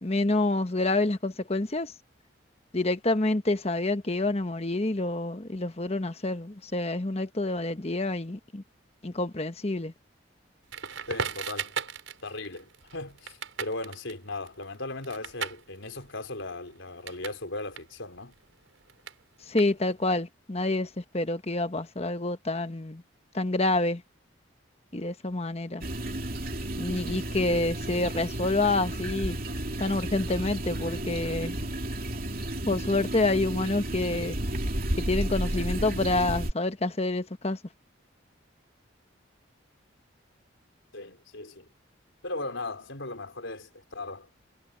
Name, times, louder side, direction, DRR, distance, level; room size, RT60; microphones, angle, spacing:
voice 1, 0.0-1.9 2.7-8.6 9.0-9.9 19.4-23.0 23.3-24.0 24.9-25.8 26.8-29.4 29.8-31.6 32.7-34.4 35.0-37.6, left 2 dB, 30° left, 1.2 m, -28 dB
Crackle, 10.7-17.4 17.7-20.1, right 6 dB, 80° right, 5.8 m, -38 dB
voice 2, 11.1-11.8 12.2-18.3 40.9-41.7 42.2-44.3, left 2 dB, 75° left, 4.3 m, -37 dB
sound 1, 25.8-36.5, right 1 dB, 45° right, 2.8 m, -32 dB
head